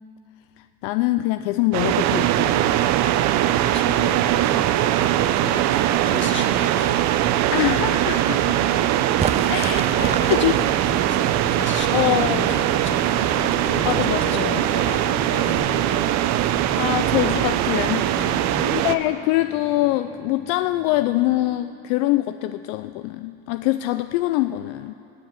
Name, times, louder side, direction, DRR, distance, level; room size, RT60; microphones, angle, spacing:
voice 1, 0.8-2.6 7.5-8.8 9.5-10.5 11.9-12.5 13.8-14.5 16.7-18.0 18.6-24.9, left 16 dB, 75° left, 11 dB, 0.5 m, -24 dB
sound 1, 1.7-19.0, right 12 dB, 60° right, 0.7 m, -21 dB
voice 2, 3.5-7.3 9.7-16.2 18.1-18.8, left 5 dB, 40° left, 5 dB, 1.7 m, -36 dB
sound 2, 3.9-21.6, left 5 dB, 25° left, 1.7 m, -42 dB
sound 3, 9.2-19.0, right 7 dB, 20° right, 0.4 m, -34 dB
18.5 x 7.2 x 9.1 m, 2.7 s
supercardioid pair, 85°, 30 cm